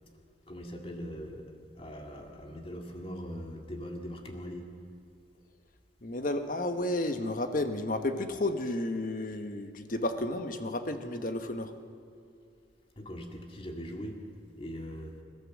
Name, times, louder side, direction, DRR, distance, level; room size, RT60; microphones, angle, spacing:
voice 1, 0.5-1.5 1.8-4.7 13.0-14.2 14.6-15.1, equal, 30° left, 2 dB, 2.2 m, -41 dB
voice 2, 6.0-11.7, left 1 dB, 50° left, 7 dB, 1.2 m, -32 dB
27.0 x 13.0 x 7.4 m, 2.4 s
head